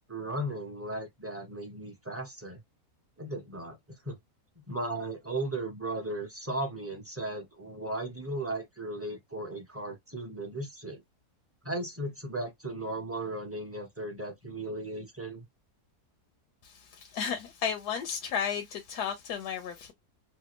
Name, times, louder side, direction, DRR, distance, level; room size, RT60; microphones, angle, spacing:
voice 1, 0.1-2.6 3.2-3.8 4.0-4.2 4.7-11.0 11.6-15.4, right 1 dB, 15° right, 0.5 m, -36 dB
voice 2, 16.6-19.9, left 7 dB, 90° left, 1.2 m, -33 dB
3.4 x 2.1 x 3.0 m
omnidirectional pair, 1.7 m